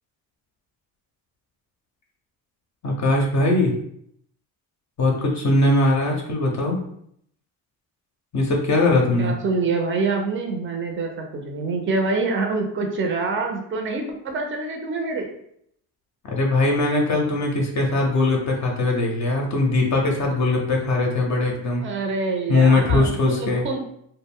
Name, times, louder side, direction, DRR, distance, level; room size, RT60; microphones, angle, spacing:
voice 1, 2.8-3.7 5.0-6.8 8.3-9.3 16.2-21.8 22.5-23.6, left 2 dB, 40° left, 0 dB, 0.6 m, -20 dB
voice 2, 9.2-15.3 21.8-23.1 23.4-23.8, right 3 dB, 25° right, 3 dB, 0.5 m, -26 dB
2.1 x 2.0 x 3.4 m, 0.70 s
supercardioid pair, 80°, 46 cm